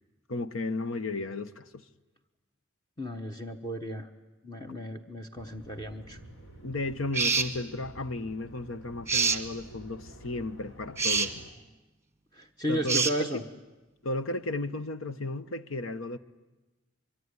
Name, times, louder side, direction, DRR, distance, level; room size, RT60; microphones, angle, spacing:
voice 1, 0.3-1.8 6.6-11.4 12.7-13.3 14.0-16.2, left 2 dB, 90° left, 1.1 m, -34 dB
voice 2, 3.0-4.1 4.4-6.2 12.4-13.4, equal, 20° left, 1.1 m, -34 dB
sound 1, 5.4-11.5, right 1 dB, 70° left, 3.9 m, -50 dB
sound 2, 7.1-7.5 9.1-9.4 11.0-11.3 12.9-13.2, right 5 dB, 15° right, 1.2 m, -25 dB
24.5 x 23.5 x 9.7 m
head